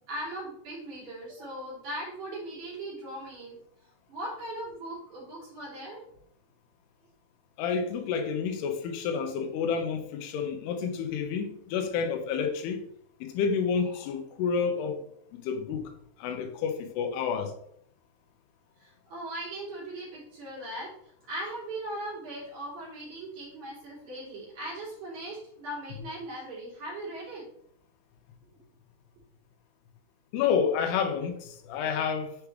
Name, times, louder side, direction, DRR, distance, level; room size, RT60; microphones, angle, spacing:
voice 1, 0.1-3.6 4.1-6.0 18.8-20.9 21.3-27.4, right 1 dB, 50° right, 4.0 m, -39 dB
voice 2, 7.6-12.8 13.2-15.0 15.4-15.8 16.2-17.5 30.3-32.4, left 6 dB, 90° left, 2.8 m, -29 dB
7.5 x 4.7 x 3.2 m
omnidirectional pair, 4.6 m